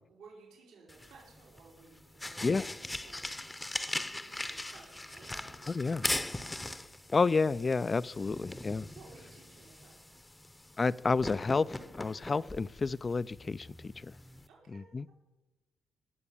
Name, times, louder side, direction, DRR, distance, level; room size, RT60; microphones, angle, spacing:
voice 1, 0.1-3.4 3.8-6.4 8.2-8.3 9.0-10.2 14.5-15.1, right 4 dB, 90° right, -3 dB, 4.3 m, -57 dB
sound 1, 0.9-14.5, left 1 dB, 10° left, 0.7 m, -41 dB
voice 2, 5.7-6.0 7.1-8.9 10.8-14.1 14.7-15.1, left 4 dB, 30° left, 19 dB, 0.4 m, -30 dB
18.5 x 7.2 x 7.0 m, 1.1 s
cardioid pair, 90°, 0 cm